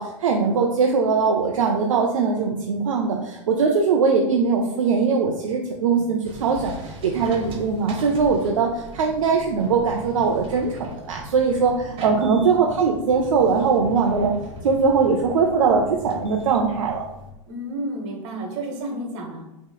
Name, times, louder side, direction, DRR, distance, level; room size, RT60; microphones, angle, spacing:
voice 1, 0.0-14.3 14.6-17.0, right 5 dB, 80° right, 1 dB, 0.4 m, -21 dB
sound 1, 6.2-17.3, equal, 35° right, 0.9 m, -38 dB
voice 2, 12.1-12.4 17.5-19.4, right 1 dB, 60° right, 2 dB, 1.1 m, -31 dB
4.8 x 2.9 x 2.3 m, 0.94 s
hypercardioid pair, 90°, 17 cm